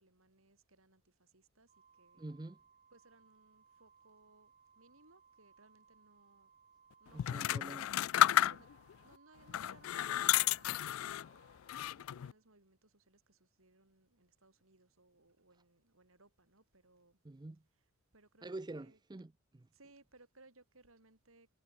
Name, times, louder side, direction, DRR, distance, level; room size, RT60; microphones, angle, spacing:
voice 1, 0.0-2.3 2.9-6.5 7.0-17.2 17.6-19.0 19.7-21.5, right 2 dB, 80° right, 5.9 m, -66 dB
Organ, 1.7-12.4, right 6 dB, 35° right, 4.2 m, -67 dB
voice 2, 2.2-2.6 7.1-7.9 17.2-17.6 18.4-19.7, right 2 dB, 20° right, 0.5 m, -47 dB
sound 1, 7.2-8.9 9.5-11.3 11.7-12.3, left 12 dB, 80° left, 0.3 m, -32 dB
head